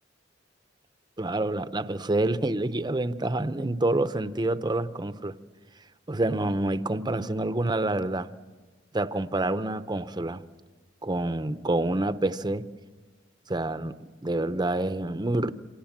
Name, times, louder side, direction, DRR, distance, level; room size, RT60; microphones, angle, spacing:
voice 1, 1.2-5.3 6.1-8.3 8.9-10.4 11.0-12.6 13.5-13.9 14.2-15.5, right 2 dB, 25° right, 0.8 m, -27 dB
28.0 x 25.5 x 7.4 m
head